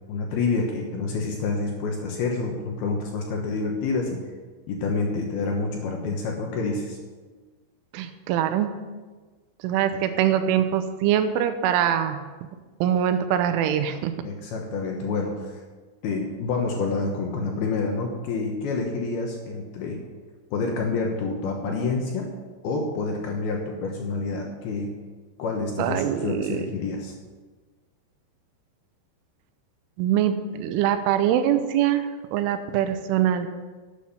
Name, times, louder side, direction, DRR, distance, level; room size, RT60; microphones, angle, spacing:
voice 1, 0.1-4.2 4.7-7.0 14.2-15.6 16.0-20.0 20.5-22.3 22.6-25.0 25.4-27.1, left 3 dB, 70° left, 1 dB, 2.6 m, -28 dB
voice 2, 7.9-8.7 9.6-12.2 12.8-14.1 25.8-26.7 30.0-33.5, right 10 dB, 85° right, 9 dB, 3.2 m, -23 dB
12.0 x 8.8 x 6.0 m, 1.3 s
omnidirectional pair, 5.6 m